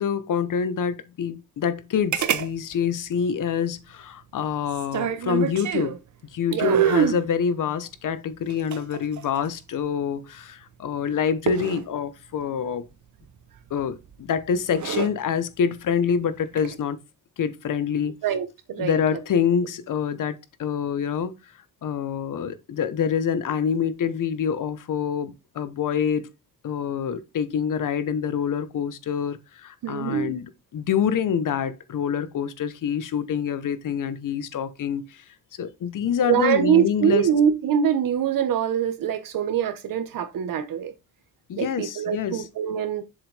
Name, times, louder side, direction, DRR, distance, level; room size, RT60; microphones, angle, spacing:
voice 1, 0.0-6.0 6.3-12.8 13.7-17.0 17.4-18.1 18.8-21.3 21.8-26.3 26.6-35.2 35.6-37.3 41.5-42.5, left 7 dB, 70° left, 1.0 m, -26 dB
sound 1, 2.1-2.5 2.7-2.8 4.7-6.0 6.6-7.2 8.5-9.7 11.5-11.8 13.7-14.1 14.6-15.1 16.4-16.8, right 9 dB, 60° right, 0.8 m, -25 dB
voice 2, 6.5-6.8 18.2-19.0 29.8-30.3 36.3-40.9 41.6-43.0, right 8 dB, 80° right, 1.1 m, -24 dB
7.1 x 5.1 x 3.4 m
cardioid pair, 85°, 33 cm